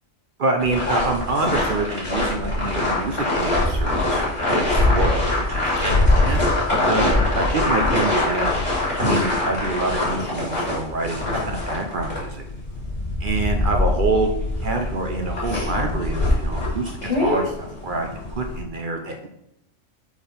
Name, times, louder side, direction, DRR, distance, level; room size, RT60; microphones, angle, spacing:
voice 1, 0.4-4.2 4.5-8.5 9.0-12.4 13.2-14.3 14.6-19.3, right 3 dB, 50° right, 3 dB, 0.6 m, -26 dB
sound 1, 0.6-18.6, left 2 dB, 20° left, 2.4 m, -23 dB
4.9 x 4.3 x 5.0 m, 0.81 s
omnidirectional pair, 1.4 m